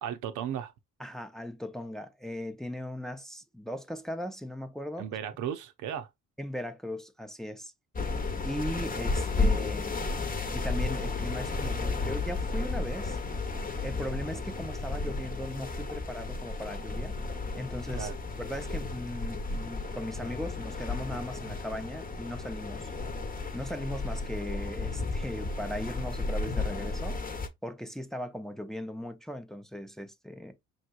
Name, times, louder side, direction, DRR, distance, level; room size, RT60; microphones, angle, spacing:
voice 1, 0.0-0.7 5.0-6.1 18.0-18.2, right 9 dB, 85° right, 0.8 m, -35 dB
voice 2, 1.0-5.1 6.4-7.7 8.4-10.0 10.5-13.2 13.8-17.2 17.5-18.1 18.4-22.9 23.5-27.3 27.6-30.7, equal, ahead, 0.6 m, -38 dB
sound 1, 8.0-27.5, left 3 dB, 30° left, 0.9 m, -33 dB
5.4 x 3.1 x 2.4 m
cardioid pair, 90°, 30 cm